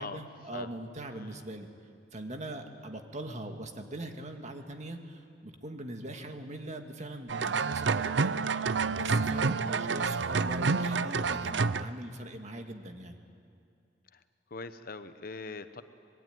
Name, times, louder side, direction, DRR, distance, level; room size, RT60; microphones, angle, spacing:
voice 1, 0.0-1.7 2.1-13.2, right 1 dB, 40° right, 5 dB, 1.9 m, -42 dB
sound 1, 7.3-11.8, right 4 dB, 85° right, 0.6 m, -28 dB
voice 2, 14.5-15.8, left 3 dB, 55° left, 10 dB, 1.0 m, -41 dB
25.5 x 21.5 x 9.3 m, 2.4 s
head